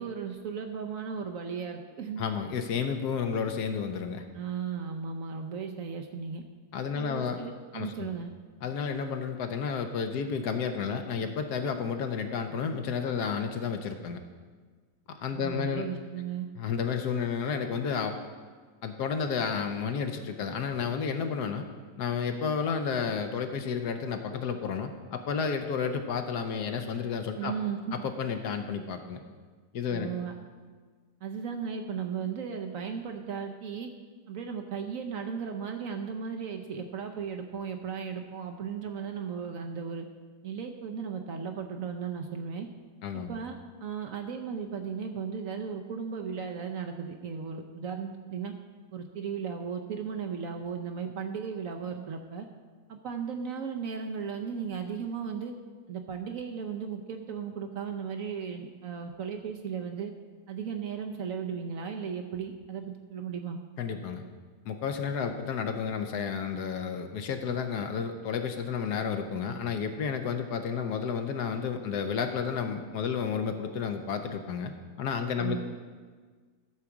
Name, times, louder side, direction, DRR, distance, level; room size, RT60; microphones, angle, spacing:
voice 1, 0.0-2.2 4.3-6.4 6.9-8.3 15.3-16.5 27.3-28.0 29.9-30.3 31.2-33.9 34.3-40.1 40.4-42.7 43.1-48.5 48.9-52.5 52.9-55.5 55.9-60.1 60.5-63.6 75.4-75.6, right 6 dB, 65° right, 5 dB, 0.9 m, -36 dB
voice 2, 2.2-4.2 6.7-7.4 7.7-8.1 8.6-14.2 15.1-15.9 16.6-18.2 18.8-21.7 22.0-27.5 27.9-29.2 29.7-30.1 43.0-43.3 63.8-64.2 64.6-74.7 75.0-75.6, left 6 dB, 70° left, 7 dB, 1.2 m, -31 dB
12.5 x 4.8 x 7.0 m, 1.5 s
omnidirectional pair, 2.0 m